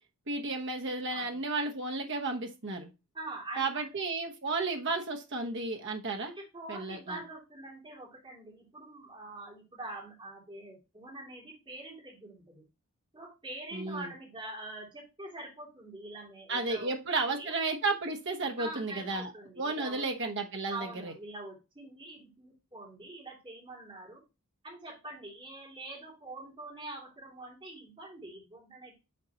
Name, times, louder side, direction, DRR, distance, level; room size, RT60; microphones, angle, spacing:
voice 1, 0.3-2.9 3.6-6.3 6.7-7.2 13.7-14.1 16.5-19.3 19.6-21.1, right 3 dB, 55° right, 2 dB, 1.0 m, -33 dB
voice 2, 1.1-1.4 3.1-3.9 6.4-12.6 13.1-17.5 18.6-20.1 20.7-24.2 24.6-29.0, right 2 dB, 25° right, -4 dB, 2.8 m, -45 dB
8.8 x 3.9 x 2.8 m, 0.28 s
head